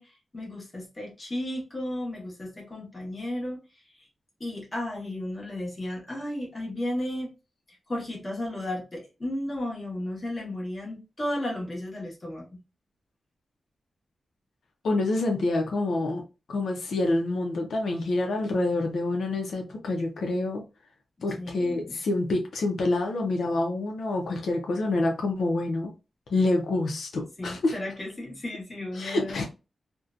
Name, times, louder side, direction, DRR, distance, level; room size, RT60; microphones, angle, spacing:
voice 1, 0.0-3.6 4.0-4.1 4.4-7.3 7.7-12.5 21.4-22.0 27.4-29.5, left 1 dB, 25° left, -3 dB, 1.1 m, -34 dB
voice 2, 14.8-16.2 16.5-20.6 21.2-25.9 26.3-27.8 28.9-29.4, left 2 dB, 85° left, 2 dB, 0.5 m, -27 dB
2.6 x 2.1 x 2.4 m, 0.29 s
wide cardioid pair, 155°, 0 cm